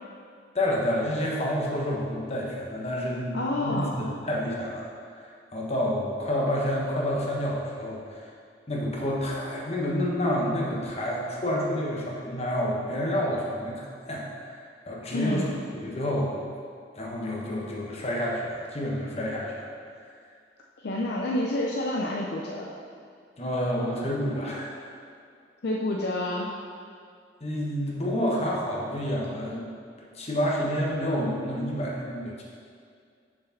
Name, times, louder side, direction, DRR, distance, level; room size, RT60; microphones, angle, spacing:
voice 1, 0.5-4.9 5.2-8.3 8.7-14.6 14.9-15.5 15.8-16.4 17.0-19.7 23.4-24.8 27.4-29.7 30.1-32.4, equal, 35° left, -3 dB, 1.1 m, -29 dB
voice 2, 3.3-4.0 15.1-15.5 20.8-22.7 25.6-26.5, left 1 dB, 60° left, -1 dB, 0.5 m, -28 dB
6.2 x 4.8 x 5.8 m, 2.2 s
head